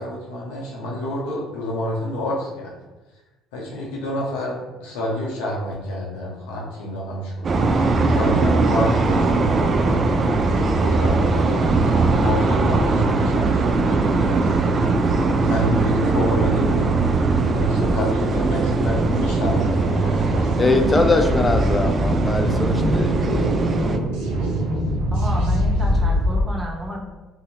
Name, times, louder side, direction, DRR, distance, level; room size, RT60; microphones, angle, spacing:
voice 1, 0.0-2.7 3.5-10.4 10.8-14.9 15.1-20.8, equal, 85° left, -3 dB, 0.7 m, -28 dB
sound 1, 7.4-24.0, right 3 dB, 40° right, 0.3 m, -20 dB
sound 2, 9.3-9.6 10.0-11.2 11.5-11.6 11.8-16.7 17.1-17.2 17.6-26.4, equal, 85° right, 0.7 m, -26 dB
voice 2, 20.6-23.5, left 3 dB, 25° left, 6 dB, 0.4 m, -22 dB
voice 3, 25.1-27.1, equal, 25° right, -1 dB, 0.8 m, -31 dB
2.8 x 2.7 x 2.8 m, 1.1 s
supercardioid pair, 70°, 0 cm